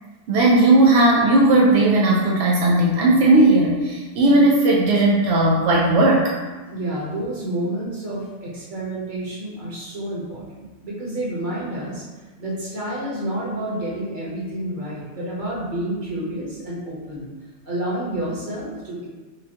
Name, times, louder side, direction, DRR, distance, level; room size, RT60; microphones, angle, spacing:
voice 1, 0.3-6.3, right 2 dB, 80° right, -3 dB, 0.6 m, -16 dB
voice 2, 6.7-12.0 12.4-17.3 17.6-19.1, right 1 dB, 35° right, -7 dB, 1.0 m, -29 dB
5.0 x 2.2 x 2.8 m, 1.3 s
omnidirectional pair, 1.7 m